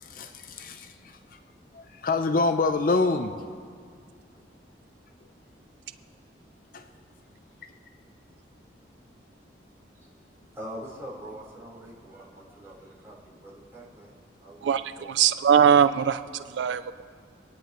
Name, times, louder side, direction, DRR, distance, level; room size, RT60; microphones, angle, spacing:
voice 1, 0.0-0.9 1.7-3.4 6.7-6.8, left 3 dB, 50° left, 8 dB, 0.5 m, -26 dB
voice 2, 10.5-14.1 14.4-15.2, equal, 15° right, -8 dB, 3.9 m, -43 dB
voice 3, 14.6-16.2 16.5-17.0, right 8 dB, 75° right, 12 dB, 0.3 m, -21 dB
24.5 x 9.9 x 3.1 m, 2.1 s
head